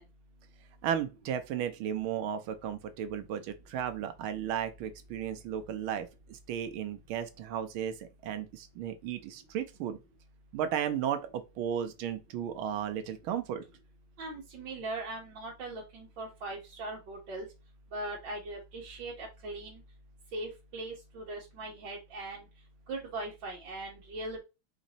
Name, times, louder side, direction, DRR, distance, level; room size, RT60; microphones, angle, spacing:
voice 1, 0.8-10.0 10.5-13.6, right 9 dB, 80° right, 1.6 m, -34 dB
voice 2, 14.2-17.5 17.9-19.8 20.3-22.4 22.9-24.4, right 2 dB, 65° right, 1.8 m, -40 dB
5.1 x 2.6 x 4.0 m
omnidirectional pair, 2.3 m